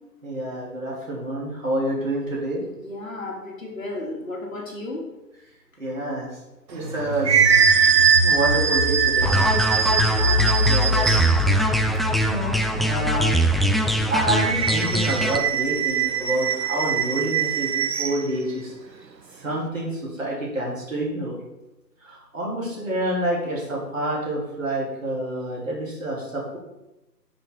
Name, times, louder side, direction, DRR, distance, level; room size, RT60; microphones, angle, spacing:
voice 1, 0.2-2.6 5.8-6.3 6.7-7.3 8.2-9.6 10.7-11.1 12.2-13.3 13.8-18.7 19.4-21.4 22.0-26.6, right 1 dB, 50° right, -4 dB, 3.4 m, -28 dB
voice 2, 2.6-5.1 9.9-10.5, left 2 dB, 55° left, -1 dB, 2.2 m, -34 dB
sound 1, 6.8-15.5, left 2 dB, 75° left, 2.2 m, -27 dB
sound 2, 6.8-11.5 14.2-18.2, right 7 dB, 85° right, 1.0 m, -22 dB
sound 3, 9.2-15.4, equal, ahead, 0.3 m, -22 dB
7.7 x 5.8 x 4.7 m, 0.94 s
figure-of-eight pair, 170°, 50 cm